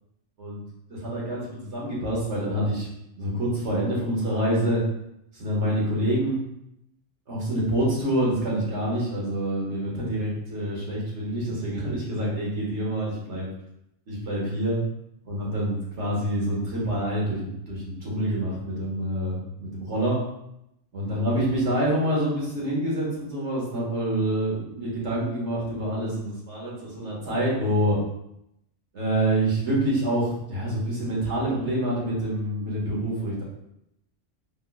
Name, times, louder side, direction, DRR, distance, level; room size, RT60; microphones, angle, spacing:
voice 1, 0.4-2.9 3.2-4.8 5.3-6.4 7.3-13.5 14.1-14.8 15.2-20.2 20.9-28.0 28.9-33.4, right 1 dB, 65° right, -5 dB, 1.7 m, -27 dB
5.2 x 3.7 x 2.3 m, 0.81 s
omnidirectional pair, 1.3 m